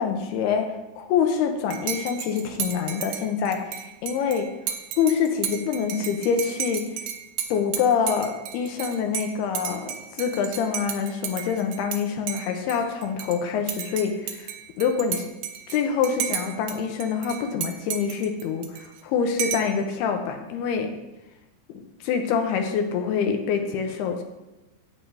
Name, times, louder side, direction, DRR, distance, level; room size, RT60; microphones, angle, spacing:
voice 1, 0.0-4.5 5.0-7.0 7.5-14.5 14.8-15.2 15.7-20.9 22.0-24.2, left 6 dB, 75° left, 4 dB, 2.6 m, -26 dB
Dishes pots and pans / Cutlery silverware / Chink clink, 1.7-12.0 12.3-13.4 13.7-16.8 17.0-19.0 19.4-19.8, right 9 dB, 80° right, 2.6 m, -33 dB
11.0 x 8.2 x 2.7 m, 1.0 s
omnidirectional pair, 5.1 m